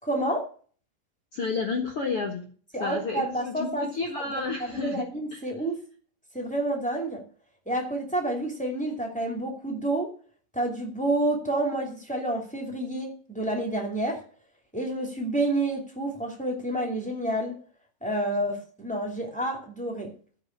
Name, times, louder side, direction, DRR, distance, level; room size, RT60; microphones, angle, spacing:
voice 1, 0.0-0.4 2.7-3.8 4.1-5.8 6.3-7.2 7.6-10.1 10.5-14.2 14.7-17.5 18.0-20.1, right 1 dB, 5° left, 1 dB, 1.0 m, -29 dB
voice 2, 1.3-2.5 2.8-5.4, left 4 dB, 75° left, 2 dB, 1.2 m, -31 dB
14.5 x 5.7 x 8.7 m, 0.43 s
omnidirectional pair, 5.2 m